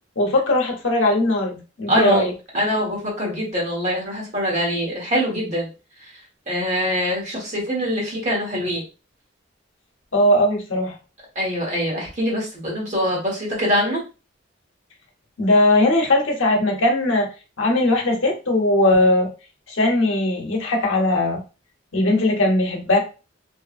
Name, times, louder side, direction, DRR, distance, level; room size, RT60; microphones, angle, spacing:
voice 1, 0.2-2.3 10.1-11.0 15.4-17.3 17.6-19.3 19.7-21.4 21.9-23.0, left 1 dB, 90° left, 1 dB, 0.9 m, -19 dB
voice 2, 1.9-2.3 2.5-5.7 6.5-8.8 11.3-14.0, equal, 40° right, -2 dB, 1.3 m, -23 dB
2.7 x 2.5 x 2.4 m, 0.32 s
head